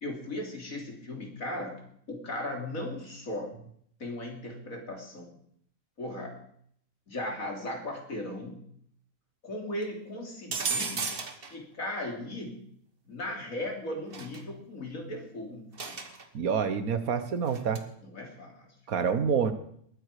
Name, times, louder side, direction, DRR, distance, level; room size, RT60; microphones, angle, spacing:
voice 1, 0.0-1.8 2.1-3.5 4.0-5.3 6.0-6.4 7.1-8.6 9.4-11.1 11.5-12.6 13.1-16.0 18.0-18.7 19.0-19.2, left 1 dB, 75° left, 1 dB, 3.5 m, -37 dB
sound 1, 10.5-11.5 14.1-14.4 15.8-16.2 17.5-17.8, right 4 dB, 45° right, 1.4 m, -33 dB
voice 2, 16.3-17.8 18.9-19.5, right 6 dB, 90° right, 10 dB, 1.6 m, -27 dB
20.0 x 9.1 x 4.9 m, 0.65 s
omnidirectional pair, 1.4 m